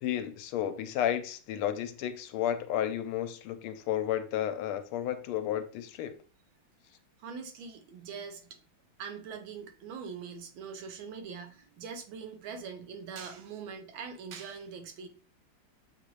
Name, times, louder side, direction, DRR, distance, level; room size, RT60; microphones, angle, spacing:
voice 1, 0.0-6.1, left 10 dB, 90° left, 1.4 m, -32 dB
voice 2, 7.2-8.6 9.0-15.1, right 6 dB, 75° right, 1.4 m, -42 dB
6.7 x 2.5 x 3.0 m
omnidirectional pair, 2.3 m